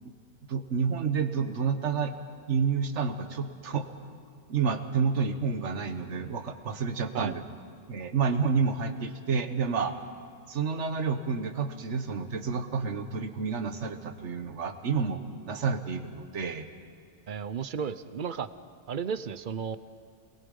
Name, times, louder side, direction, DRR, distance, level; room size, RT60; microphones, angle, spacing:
voice 1, 0.5-2.1 2.5-3.9 4.5-7.4 7.9-9.9 10.5-15.2 15.5-16.7, right 5 dB, 75° right, 9 dB, 1.5 m, -29 dB
voice 2, 17.3-18.5 18.9-19.8, right 6 dB, 50° right, 14 dB, 0.8 m, -33 dB
28.0 x 20.5 x 5.4 m, 2.2 s
omnidirectional pair, 1.2 m